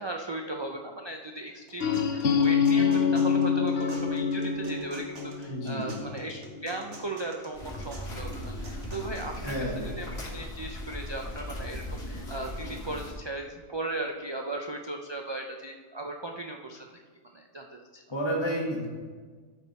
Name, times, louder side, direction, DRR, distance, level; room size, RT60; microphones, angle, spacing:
voice 1, 0.0-16.9 17.3-18.0, right 2 dB, 45° right, 2 dB, 0.3 m, -37 dB
sound 1, 1.5-9.5, right 2 dB, 70° right, 1.6 m, -50 dB
sound 2, 1.8-7.6, left 6 dB, 55° left, 0.8 m, -27 dB
voice 2, 5.5-6.0 9.4-9.9 18.1-18.9, equal, 20° left, -4 dB, 1.6 m, -31 dB
sound 3, 7.5-13.1, left 1 dB, 80° left, 3.7 m, -38 dB
13.0 x 5.4 x 4.1 m, 1.5 s
omnidirectional pair, 1.3 m